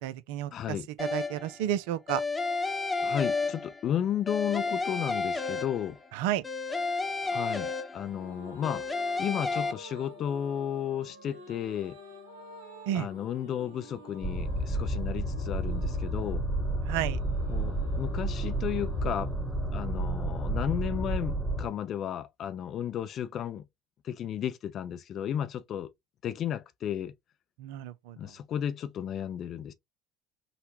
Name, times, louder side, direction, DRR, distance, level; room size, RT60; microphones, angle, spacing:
voice 1, 0.0-2.2 6.1-6.4 12.9-13.1 16.9-17.2 27.6-28.3, right 12 dB, 70° right, 0.3 m, -32 dB
voice 2, 0.5-0.9 3.0-6.0 7.2-8.8 9.2-12.0 12.9-16.4 17.5-19.3 19.7-23.6 24.0-25.9 26.2-27.1 28.2-29.7, left 9 dB, 50° left, 0.5 m, -33 dB
sound 1, 1.0-1.6 2.1-3.9 4.3-6.1 6.4-8.2 8.6-9.7, left 3 dB, 15° left, 0.8 m, -31 dB
sound 2, 7.9-21.5, equal, 85° right, 0.9 m, -50 dB
sound 3, 14.2-21.7, right 1 dB, ahead, 1.0 m, -31 dB
3.9 x 2.1 x 2.8 m
figure-of-eight pair, 60°, 0 cm